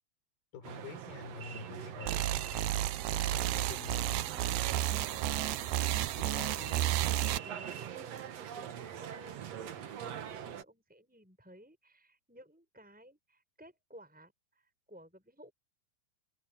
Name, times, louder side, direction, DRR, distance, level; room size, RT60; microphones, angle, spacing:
voice 1, 0.5-4.4 6.2-6.9, left 4 dB, 85° left, 6.1 m, -47 dB
sound 1, 0.6-10.6, right 9 dB, 55° right, 2.0 m, -44 dB
sound 2, 2.1-7.4, right 13 dB, 85° right, 1.7 m, -32 dB
voice 2, 7.4-15.5, equal, ahead, 6.5 m, -57 dB
omnidirectional pair, 4.3 m